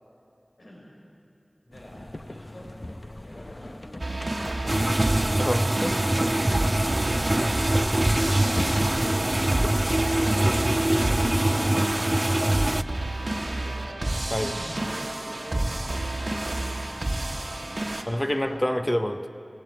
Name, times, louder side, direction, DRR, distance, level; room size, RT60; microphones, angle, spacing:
voice 1, 1.7-2.7 3.2-5.0 6.1-8.7 9.5-14.0 14.9-16.7 18.0-18.7, equal, 80° left, -4 dB, 5.1 m, -46 dB
sound 1, 1.7-10.0, left 1 dB, 50° left, 1.0 m, -39 dB
sound 2, 4.0-18.0, right 1 dB, 65° right, 1.5 m, -30 dB
sound 3, 4.7-12.8, right 1 dB, 35° right, 0.5 m, -24 dB
voice 2, 5.4-6.0 14.3-14.6 18.1-19.3, equal, 15° left, 9 dB, 1.0 m, -27 dB
17.0 x 16.5 x 9.3 m, 2.6 s
wide cardioid pair, 45°, 0 cm